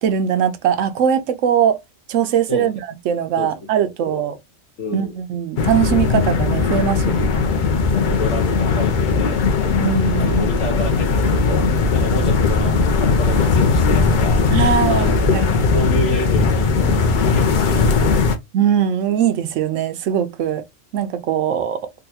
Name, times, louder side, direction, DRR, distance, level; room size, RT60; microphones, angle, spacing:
voice 1, 0.0-1.8 2.1-4.4 4.9-7.3 9.8-10.4 14.5-15.6 18.5-20.6 20.9-21.8, right 9 dB, 90° right, 1.0 m, -20 dB
voice 2, 3.8-4.2 4.8-5.1 7.1-7.2 7.9-9.5 10.2-14.5 14.9-18.2, left 2 dB, 80° left, 1.2 m, -29 dB
sound 1, 5.6-18.4, left 4 dB, 50° left, 0.6 m, -18 dB
3.8 x 2.3 x 2.7 m
omnidirectional pair, 1.3 m